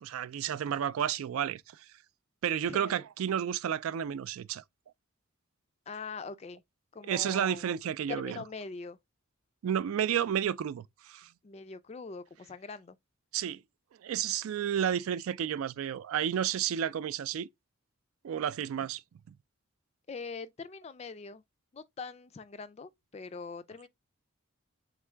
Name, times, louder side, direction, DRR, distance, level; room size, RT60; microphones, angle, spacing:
voice 1, 0.0-1.6 2.4-4.6 7.0-8.4 9.6-11.3 13.3-13.6 14.0-17.5 18.2-19.0, right 9 dB, 75° right, 0.3 m, -31 dB
voice 2, 5.9-6.6 6.9-7.6 8.1-9.0 11.4-13.0 20.1-21.4 21.7-23.9, left 4 dB, 30° left, 0.3 m, -42 dB
3.7 x 3.5 x 3.2 m
head